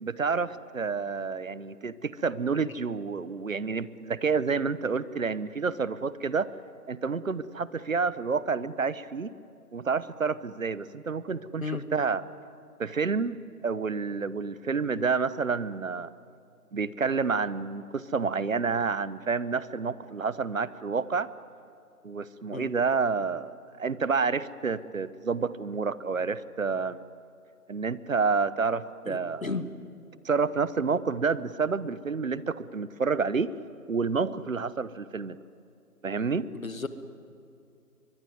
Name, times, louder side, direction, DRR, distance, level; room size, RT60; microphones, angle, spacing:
voice 1, 0.0-6.5 6.9-9.4 9.7-12.2 12.8-16.1 16.7-21.3 22.0-27.0 27.7-29.5 30.2-33.5 33.9-35.4 36.0-36.5, right 5 dB, 60° right, 17 dB, 1.1 m, -29 dB
voice 2, 29.0-29.7 36.5-36.9, left 4 dB, 60° left, 10 dB, 2.0 m, -33 dB
23.0 x 22.5 x 9.4 m, 2.6 s
figure-of-eight pair, 160°, 46 cm